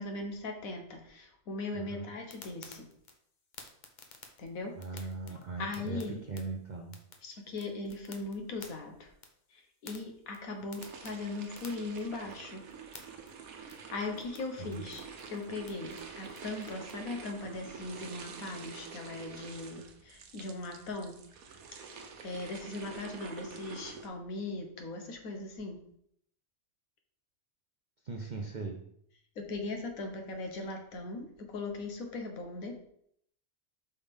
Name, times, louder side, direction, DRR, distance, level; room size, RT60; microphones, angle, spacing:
voice 1, 0.0-2.9 4.4-6.2 7.2-9.1 9.5-12.6 13.9-15.0 15.3-21.2 22.2-25.8 29.4-32.9, left 2 dB, 75° left, 4 dB, 1.4 m, -39 dB
sound 1, 2.3-16.9, left 4 dB, 40° left, 0.8 m, -55 dB
voice 2, 4.8-6.0 6.3-7.0 14.6-14.9 28.0-28.9, right 3 dB, 50° right, 1 dB, 0.5 m, -39 dB
sound 2, 10.8-24.1, right 5 dB, 90° right, 1.2 m, -47 dB
5.4 x 3.5 x 5.1 m, 0.70 s
omnidirectional pair, 1.5 m